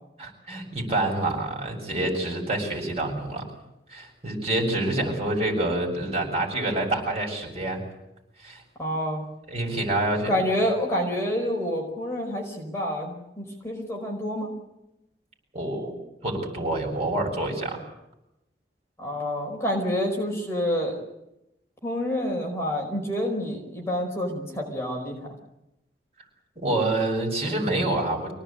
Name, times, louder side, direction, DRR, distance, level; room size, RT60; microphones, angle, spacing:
voice 1, 0.2-3.4 3.9-7.8 8.4-8.6 9.5-10.3 15.5-15.9 16.2-17.8 26.6-28.3, right 2 dB, 35° right, 0 dB, 7.4 m, -27 dB
voice 2, 8.8-9.3 10.2-14.5 19.0-21.0 21.8-25.3, equal, 15° left, 0 dB, 4.9 m, -28 dB
25.5 x 18.5 x 8.9 m, 0.89 s
head